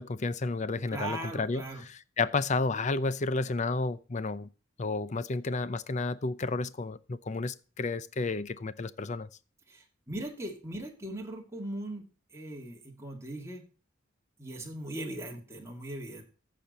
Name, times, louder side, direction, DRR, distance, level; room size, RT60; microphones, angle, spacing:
voice 1, 0.0-1.6 2.2-4.5 4.8-9.3, left 3 dB, 35° left, 0.5 m, -31 dB
voice 2, 0.9-1.8 9.7-13.6 14.4-16.2, right 1 dB, 15° right, 2.0 m, -39 dB
15.0 x 5.2 x 4.1 m
head